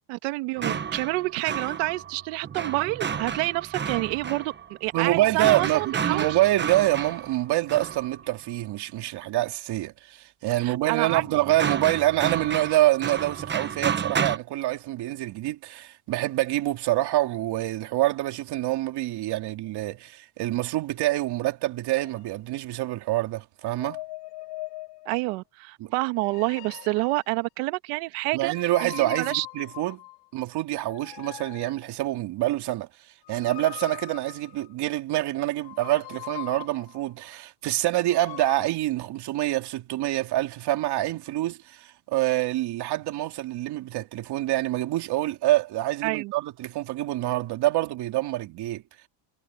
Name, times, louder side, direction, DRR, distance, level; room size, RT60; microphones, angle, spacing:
voice 1, 0.1-6.4 10.6-11.2 25.0-28.5 28.8-29.4 46.0-46.3, right 23 dB, 80° right, 1.7 m, -28 dB
sound 1, 0.6-8.3 11.1-14.4, right 7 dB, 25° right, 1.2 m, -31 dB
voice 2, 4.9-24.0 25.8-25.9 28.3-30.0 30.3-32.9 33.3-48.8, right 16 dB, 55° right, 3.1 m, -26 dB
sound 2, 21.9-22.2 23.6-25.2 26.2-27.3 28.5-30.3 30.8-32.0 33.3-34.8 35.6-37.0 38.0-38.7, left 19 dB, 65° left, 4.3 m, -41 dB
cardioid pair, 130°, 47 cm